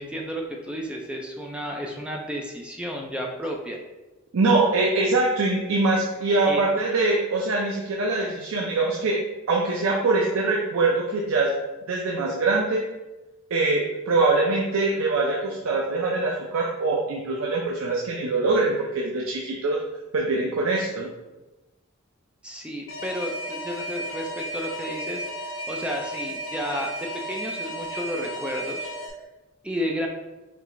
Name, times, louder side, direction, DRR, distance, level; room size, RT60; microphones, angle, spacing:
voice 1, 0.0-3.8 6.5-6.6 22.4-28.9 29.6-30.1, equal, 5° right, 0 dB, 0.3 m, -32 dB
voice 2, 4.3-9.2 9.5-11.5 11.9-12.9 13.5-19.8 20.1-21.1, right 3 dB, 80° right, -2 dB, 0.5 m, -23 dB
Alarm, 22.9-29.1, equal, 85° left, 0.7 m, -34 dB
4.4 x 3.1 x 2.5 m, 1.1 s
head